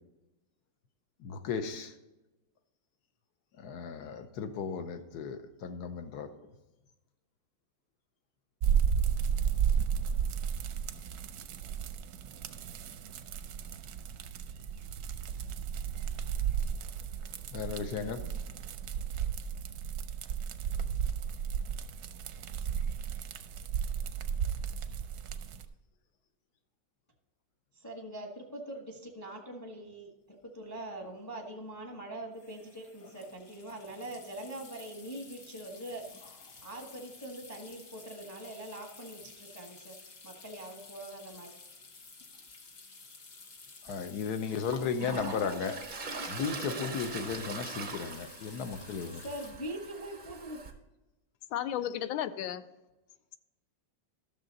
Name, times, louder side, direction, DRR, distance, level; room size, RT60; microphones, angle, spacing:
voice 1, 1.2-1.9 3.6-6.3 17.5-18.2 43.8-45.8 46.3-49.2, left 6 dB, 60° left, 9 dB, 1.2 m, -35 dB
sound 1, 8.6-25.7, right 8 dB, 70° right, 1.0 m, -33 dB
voice 2, 27.8-36.0 36.6-40.0 40.2-41.5 49.2-50.6, right 1 dB, 10° left, 2 dB, 0.9 m, -43 dB
sound 2, 30.4-30.5 30.7-31.0 32.3-49.5, left 4 dB, 45° left, 1.4 m, -53 dB
Toilet flush, 43.9-44.0 44.5-50.7, right 3 dB, 50° right, 0.5 m, -41 dB
voice 3, 51.5-52.6, left 11 dB, 80° left, 13 dB, 1.3 m, -33 dB
12.5 x 6.8 x 4.0 m, 1.0 s
omnidirectional pair, 2.2 m